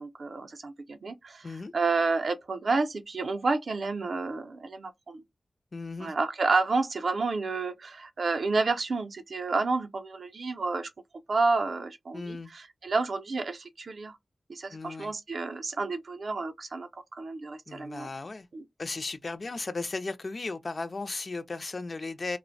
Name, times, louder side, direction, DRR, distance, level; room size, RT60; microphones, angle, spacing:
voice 1, 0.0-1.5 1.7-5.2 6.0-10.9 11.3-14.2 14.5-18.1 18.5-18.6, right 3 dB, 60° right, 0.4 m, -30 dB
voice 2, 5.7-6.1 12.1-12.5 14.7-15.1 17.7-18.5 18.8-22.4, left 3 dB, 40° left, 0.3 m, -36 dB
2.5 x 2.0 x 2.5 m
wide cardioid pair, 125°, 0 cm